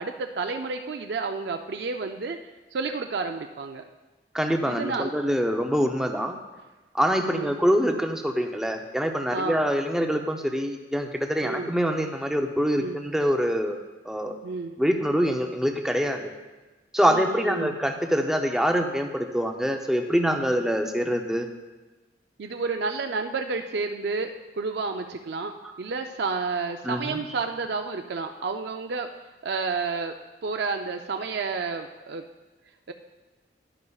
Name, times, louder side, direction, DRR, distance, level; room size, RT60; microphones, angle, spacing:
voice 1, 0.0-3.8 4.6-5.1 7.2-7.6 9.3-9.6 11.4-11.7 12.8-13.0 14.4-14.8 17.0-17.7 22.4-29.1 29.4-30.1 30.4-32.2 32.9-33.0, right 4 dB, 60° right, 5 dB, 0.4 m, -30 dB
voice 2, 4.3-6.4 6.9-13.8 14.0-14.4 14.8-16.3 16.9-21.5 25.6-25.7 26.8-27.2, equal, 5° right, 4 dB, 0.6 m, -25 dB
11.0 x 10.5 x 2.3 m, 1.2 s
head